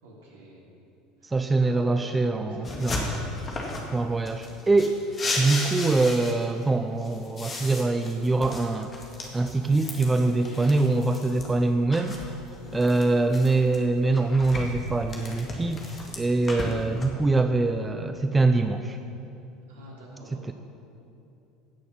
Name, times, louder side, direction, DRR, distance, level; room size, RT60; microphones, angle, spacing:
voice 1, 0.0-0.6 1.2-3.2 12.6-12.9 19.7-20.5, right 1 dB, 70° right, -4 dB, 3.1 m, -47 dB
voice 2, 1.2-3.1 3.9-5.0 5.4-8.9 9.3-12.2 12.7-19.0 20.4-20.5, right 3 dB, 15° right, 7 dB, 0.5 m, -24 dB
sound 1, 2.6-3.9 4.3-6.6 7.0-11.5 11.9-13.8 14.1-17.0, left 2 dB, 30° left, 2.0 m, -35 dB
16.5 x 6.4 x 5.8 m, 2.8 s
figure-of-eight pair, 70°, 0 cm